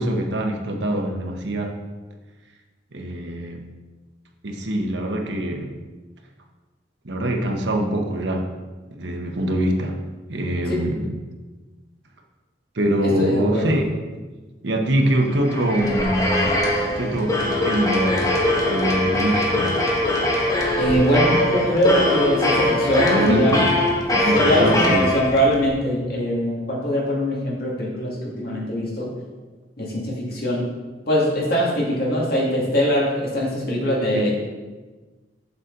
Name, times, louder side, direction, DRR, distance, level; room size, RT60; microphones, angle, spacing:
voice 1, 0.0-1.8 2.9-3.7 4.4-5.8 7.0-8.5 8.9-10.0 10.3-11.1 12.7-13.9 14.6-16.6 17.0-18.4 18.7-19.8 23.1-23.7 24.3-25.1 34.1-34.3, right 1 dB, 80° right, 3 dB, 1.1 m, -23 dB
voice 2, 13.0-13.8 20.8-23.6 24.1-29.1 29.8-30.6 31.1-34.4, equal, 60° left, -4 dB, 2.2 m, -22 dB
sound 1, 15.2-25.7, left 1 dB, 20° left, 1.1 m, -22 dB
7.2 x 6.7 x 3.9 m, 1.3 s
head